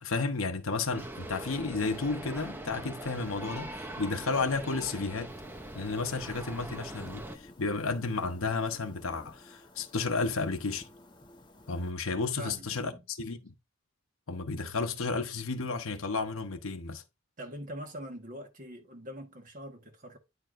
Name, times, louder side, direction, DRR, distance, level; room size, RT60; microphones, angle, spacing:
voice 1, 0.0-5.4 5.7-7.3 7.6-10.9 11.7-13.5 14.3-17.0, left 4 dB, 75° left, 0.9 m, -32 dB
sound 1, 0.9-7.4, right 1 dB, 10° right, 0.6 m, -42 dB
sound 2, 5.3-11.9, left 1 dB, 20° left, 0.8 m, -54 dB
voice 2, 12.3-13.0 17.4-20.2, equal, 40° right, 1.3 m, -43 dB
9.6 x 4.5 x 2.5 m
head